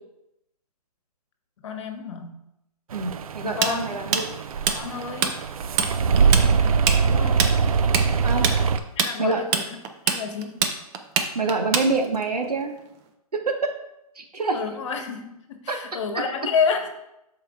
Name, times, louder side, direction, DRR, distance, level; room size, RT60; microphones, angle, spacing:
voice 1, 1.6-2.3 3.4-4.0 4.7-5.3 7.0-7.5 9.0-9.8 10.0-10.7 14.5-16.9, left 6 dB, 50° left, 4 dB, 1.3 m, -29 dB
sound 1, 2.9-8.8, right 5 dB, 65° right, 0.5 m, -22 dB
voice 2, 2.9-4.3 8.2-8.4 9.2-9.4 11.3-12.7 13.4-13.7 14.2-14.6 15.7-15.8, right 3 dB, 85° right, 3 dB, 1.3 m, -26 dB
Tools, 3.6-5.3 5.6-5.9 6.2-12.2, right 7 dB, 20° right, 0.5 m, -24 dB
13.0 x 4.8 x 2.4 m, 0.85 s
hypercardioid pair, 135°, 19 cm